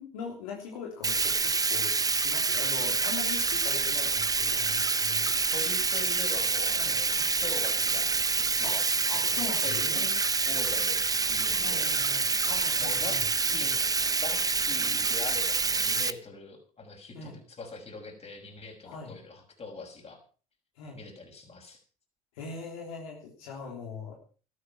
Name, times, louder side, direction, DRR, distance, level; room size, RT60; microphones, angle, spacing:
voice 1, 0.0-5.3 6.8-7.0 8.6-10.2 11.6-13.3 17.1-17.4 18.8-19.1 20.8-21.0 22.3-24.1, left 5 dB, 85° left, 0 dB, 3.4 m, -41 dB
Bathtub (filling or washing), 1.0-16.1, right 4 dB, 20° right, 0.9 m, -27 dB
voice 2, 5.5-7.2 7.4-8.1 8.4-8.8 9.2-10.1 10.5-11.0 11.3-11.9 12.8-13.2 13.4-13.9 14.2-20.2 20.9-21.8, left 3 dB, 35° left, 4 dB, 6.2 m, -42 dB
13.5 x 12.0 x 5.9 m, 0.39 s
hypercardioid pair, 65°, 18 cm